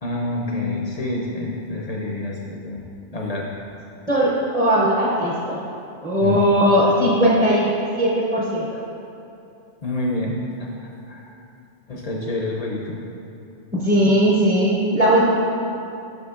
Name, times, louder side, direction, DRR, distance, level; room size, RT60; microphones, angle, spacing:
voice 1, 0.0-3.5 6.2-6.4 9.8-10.7 11.1-11.3 11.9-13.0, left 2 dB, 55° left, -2 dB, 0.4 m, -28 dB
voice 2, 4.1-5.6 6.0-8.6 13.7-15.4, equal, 10° right, -6 dB, 0.4 m, -18 dB
7.8 x 5.7 x 2.4 m, 2.7 s
omnidirectional pair, 1.3 m